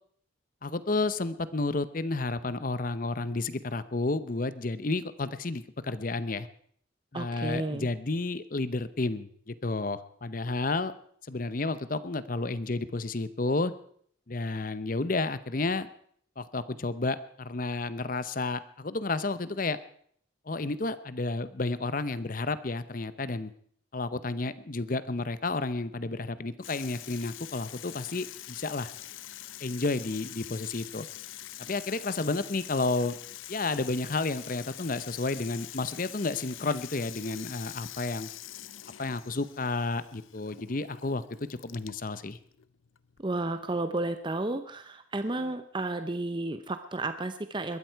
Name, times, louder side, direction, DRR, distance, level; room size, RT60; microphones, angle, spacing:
voice 1, 0.6-6.5 7.1-10.9 11.3-13.7 14.3-15.9 16.4-19.8 20.5-23.5 23.9-28.9 29.6-31.1 31.6-33.2 33.5-38.3 39.0-41.2 41.6-42.4, left 3 dB, 45° left, 14 dB, 0.8 m, -31 dB
voice 2, 7.1-7.9 43.2-47.8, right 2 dB, 25° right, 9 dB, 0.6 m, -32 dB
Water tap faucet / Sink (filling or washing), 26.6-44.1, left 13 dB, 80° left, 0.6 m, -45 dB
21.5 x 13.5 x 4.6 m, 0.62 s
head